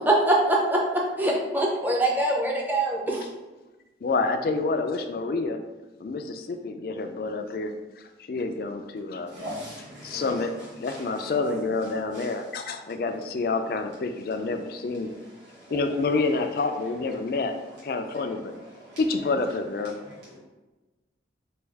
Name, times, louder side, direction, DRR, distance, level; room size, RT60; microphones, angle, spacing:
voice 1, 0.0-3.3, right 1 dB, 10° right, -2 dB, 0.5 m, -23 dB
voice 2, 4.0-5.6 6.0-7.8 8.3-9.3 10.0-15.1 15.7-17.6 17.8-18.5 19.0-19.9, left 3 dB, 55° left, 7 dB, 0.3 m, -28 dB
voice 3, 9.3-11.3 12.1-12.2 15.5-15.8 18.1-18.2 18.8-19.0 20.0-20.4, equal, 75° right, -9 dB, 1.3 m, -41 dB
4.4 x 2.3 x 3.3 m, 1.1 s
head